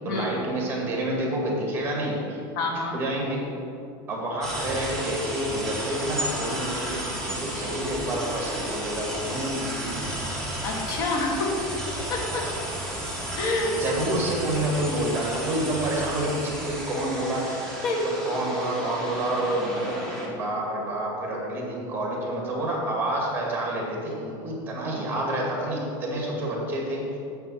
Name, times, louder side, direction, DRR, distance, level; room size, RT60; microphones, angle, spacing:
voice 1, 0.0-2.4 2.9-3.5 4.1-10.0 13.7-17.6 18.2-27.1, right 1 dB, 20° right, -2 dB, 2.0 m, -28 dB
voice 2, 2.6-3.0 10.6-11.6 12.1-12.5 13.4-13.9 17.8-18.1, left 2 dB, 85° left, 0 dB, 1.7 m, -27 dB
sound 1, 4.4-20.3, right 1 dB, 5° left, 1.4 m, -33 dB
7.9 x 5.8 x 5.7 m, 2.5 s
supercardioid pair, 155°, 11 cm